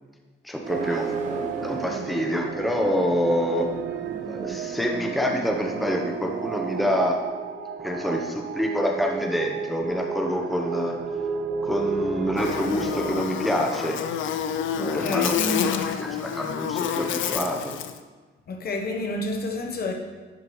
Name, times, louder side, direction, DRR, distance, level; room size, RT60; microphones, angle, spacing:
voice 1, 0.4-1.1 1.6-3.7 4.3-7.2 7.8-11.0 11.6-14.0 14.8-15.4 15.6-17.8, equal, ahead, 1 dB, 0.8 m, -27 dB
sound 1, 0.6-6.9, right 2 dB, 40° right, 1.4 m, -38 dB
sound 2, 0.7-13.2, right 6 dB, 60° right, 0.5 m, -32 dB
Buzz, 12.4-18.0, left 8 dB, 75° left, 0.5 m, -28 dB
voice 2, 14.8-15.9 18.5-19.9, left 2 dB, 50° left, 2 dB, 1.0 m, -29 dB
11.0 x 4.8 x 3.1 m, 1.3 s
cardioid pair, 90°, 20 cm